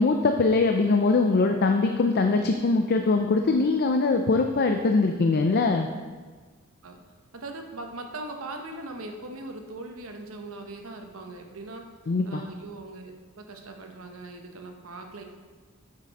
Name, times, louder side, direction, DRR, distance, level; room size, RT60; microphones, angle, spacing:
voice 1, 0.0-5.9 12.1-12.4, left 3 dB, 45° left, 5 dB, 0.4 m, -22 dB
voice 2, 7.3-11.9 12.2-15.2, right 2 dB, 75° right, 4 dB, 1.0 m, -40 dB
8.4 x 6.6 x 4.1 m, 1.4 s
head